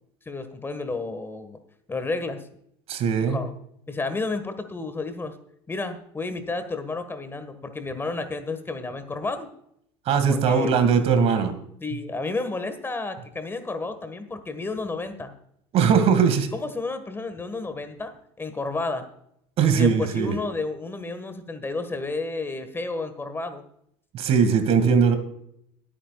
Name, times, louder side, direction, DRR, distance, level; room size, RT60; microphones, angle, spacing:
voice 1, 0.2-1.6 1.9-2.5 3.3-3.5 3.9-5.3 5.7-9.5 10.3-10.7 11.8-15.3 16.5-19.1 19.7-23.6, left 3 dB, 15° left, 9 dB, 1.6 m, -31 dB
voice 2, 2.9-3.4 10.1-11.5 15.7-16.5 19.6-20.3 24.1-25.2, right 6 dB, 50° right, 9 dB, 2.0 m, -20 dB
23.0 x 8.9 x 2.4 m, 0.72 s
hypercardioid pair, 90°, 13 cm